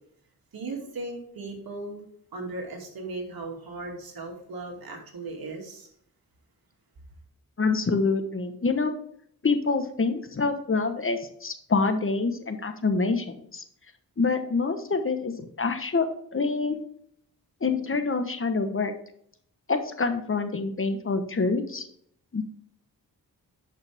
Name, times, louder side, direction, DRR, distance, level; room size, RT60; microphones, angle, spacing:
voice 1, 0.5-2.0 2.3-5.9, right 2 dB, 80° right, 0 dB, 2.6 m, -37 dB
voice 2, 7.6-8.9 9.4-13.6 14.2-16.1 16.3-16.8 17.6-18.9 19.7-21.8 22.3-22.4, left 4 dB, 35° left, 7 dB, 1.1 m, -26 dB
10.5 x 5.7 x 3.5 m, 0.67 s
cardioid pair, 70°, 36 cm